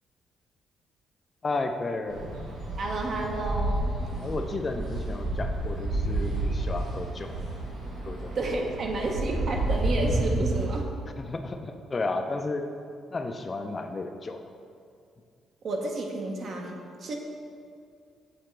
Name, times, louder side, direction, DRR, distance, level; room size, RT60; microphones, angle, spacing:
voice 1, 1.4-2.3 4.2-7.4 8.0-8.3 11.2-12.7 13.1-14.5, left 3 dB, 30° left, 6 dB, 0.4 m, -33 dB
sound 1, 2.1-10.7, right 2 dB, 80° right, 1.3 m, -30 dB
voice 2, 2.8-3.9 8.3-10.9 15.6-17.2, right 2 dB, 55° right, 1 dB, 0.8 m, -31 dB
7.7 x 3.8 x 3.2 m, 2.3 s
cardioid pair, 90°, 0 cm